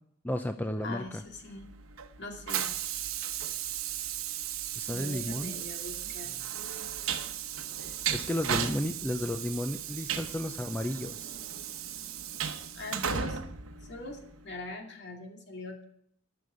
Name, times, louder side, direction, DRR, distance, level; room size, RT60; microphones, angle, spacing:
voice 1, 0.2-1.2 4.8-5.5 7.8-11.4, left 1 dB, 10° left, 7 dB, 0.5 m, -33 dB
voice 2, 0.8-1.7 2.2-2.7 4.9-6.3 12.7-13.4 13.9-15.8, left 2 dB, 55° left, 2 dB, 2.6 m, -42 dB
Train, 1.3-14.5, right 9 dB, 80° right, 1.0 m, -36 dB
13.0 x 6.8 x 8.6 m, 0.67 s
head